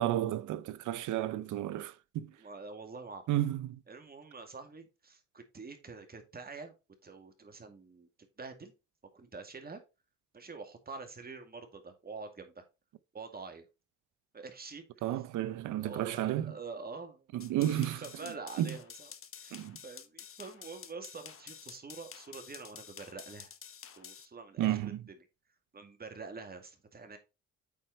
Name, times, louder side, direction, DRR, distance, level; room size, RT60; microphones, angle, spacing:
voice 1, 0.0-2.3 3.3-3.8 15.0-16.5 17.3-18.0 18.6-18.7 19.5-19.8 24.6-24.9, right 13 dB, 80° right, 0.7 m, -32 dB
voice 2, 2.4-3.2 3.9-6.7 7.0-8.1 8.4-8.7 9.1-9.8 10.3-12.6 13.1-13.6 14.3-15.2 15.8-17.3 17.6-19.1 19.4-23.5 23.9-24.9 25.7-27.2, right 4 dB, 30° right, 2.2 m, -46 dB
sound 1, 17.4-24.3, left 8 dB, 45° left, 1.0 m, -50 dB
8.6 x 4.6 x 4.2 m
cardioid pair, 90°, 30 cm